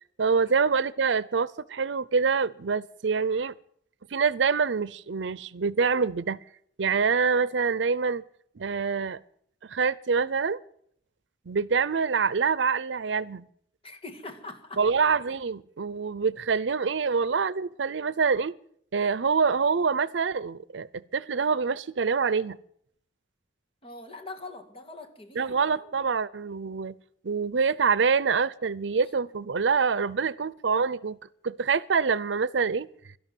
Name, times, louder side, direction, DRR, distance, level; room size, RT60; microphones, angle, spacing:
voice 1, 0.2-3.5 4.1-6.4 6.8-8.2 8.6-9.2 9.6-10.6 11.5-13.4 14.8-18.5 18.9-22.6 25.4-26.9 27.2-31.2 31.4-32.9, right 5 dB, 90° right, 0.6 m, -26 dB
voice 2, 13.8-14.8 23.8-25.6, left 2 dB, 30° left, 1.9 m, -42 dB
12.5 x 11.5 x 9.1 m
head